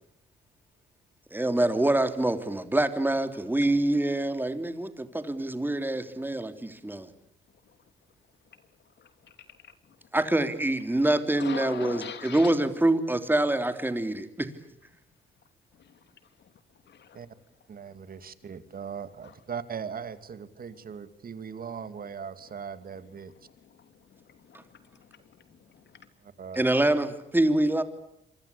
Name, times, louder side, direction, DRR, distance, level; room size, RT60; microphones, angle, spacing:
voice 1, 1.3-7.1 10.1-14.5 24.5-24.6 26.5-27.8, right 1 dB, 10° right, 9 dB, 3.3 m, -25 dB
voice 2, 9.0-10.0 11.0-12.6 15.7-16.0 16.4-16.5 16.8-17.2 18.4-18.5 19.2-19.3 20.7-20.8 22.4-22.5 22.8-26.1, left 8 dB, 60° left, 10 dB, 3.4 m, -45 dB
voice 3, 17.7-23.3 26.2-26.6, right 7 dB, 45° right, 11 dB, 2.7 m, -39 dB
27.5 x 24.5 x 8.6 m, 0.78 s
cardioid pair, 90°, 20 cm